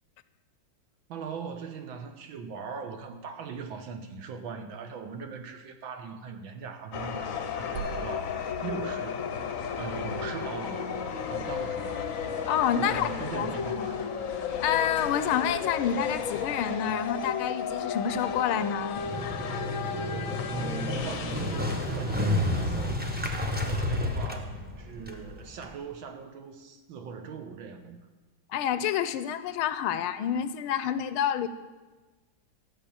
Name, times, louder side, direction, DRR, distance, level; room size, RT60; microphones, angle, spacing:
voice 1, 1.1-9.3 9.8-10.9 11.3-12.0 12.8-14.1 20.5-23.0 23.6-28.0, right 5 dB, 70° right, 7 dB, 1.9 m, -40 dB
sound 1, 6.9-22.9, left 6 dB, 55° left, 1.0 m, -34 dB
sound 2, 7.8-11.5, right 5 dB, 90° right, 1.7 m, -44 dB
voice 2, 12.5-13.9 14.6-19.0 28.5-31.5, left 9 dB, 85° left, 13 dB, 1.5 m, -28 dB
Motorcycle, 19.0-25.7, left 1 dB, 10° right, 0.6 m, -31 dB
14.0 x 6.2 x 8.6 m, 1.3 s
omnidirectional pair, 2.3 m